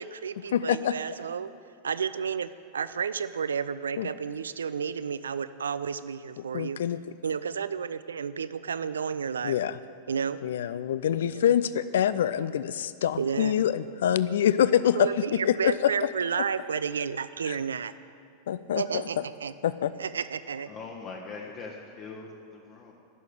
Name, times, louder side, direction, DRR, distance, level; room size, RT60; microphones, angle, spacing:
voice 1, 0.0-1.5 1.8-6.8 7.2-9.6 10.1-10.4 11.2-11.4 13.2-13.6 14.9-17.9 18.7-19.5 20.0-20.7, right 6 dB, 70° right, 14 dB, 0.3 m, -31 dB
voice 2, 0.5-0.9 4.0-4.1 6.4-7.0 9.4-9.8 10.4-16.1 17.5-17.6 18.5-19.0 19.6-19.9, left 10 dB, 60° left, 15 dB, 0.3 m, -25 dB
voice 3, 20.7-22.9, left 4 dB, 35° left, -1 dB, 1.3 m, -41 dB
11.0 x 6.5 x 9.2 m, 2.5 s
figure-of-eight pair, 90°, 0 cm